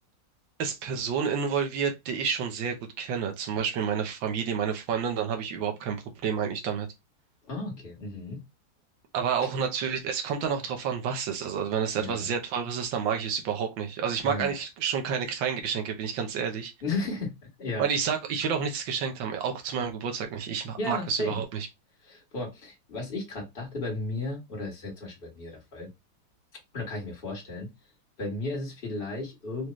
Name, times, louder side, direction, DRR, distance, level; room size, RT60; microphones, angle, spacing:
voice 1, 0.6-6.0 6.2-6.9 9.1-16.7 17.8-21.7, right 7 dB, 75° right, 1.6 m, -29 dB
voice 2, 7.4-8.4 12.0-12.2 14.2-14.5 16.8-17.9 20.8-21.4 22.0-25.9 26.7-27.7 28.2-29.7, left 2 dB, 30° left, 1.9 m, -34 dB
4.9 x 2.8 x 3.1 m
omnidirectional pair, 2.1 m